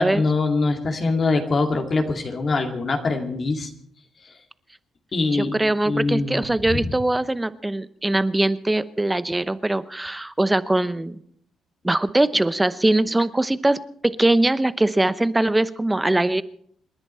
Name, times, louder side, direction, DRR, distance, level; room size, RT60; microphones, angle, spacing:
voice 1, 0.0-3.7 5.1-5.5 5.8-6.5 6.7-6.9, left 3 dB, 45° left, 3 dB, 2.3 m, -23 dB
voice 2, 5.3-11.2 11.8-16.4, right 2 dB, 10° right, 14 dB, 0.8 m, -22 dB
28.5 x 10.5 x 4.4 m, 0.65 s
cardioid pair, 90°, 0 cm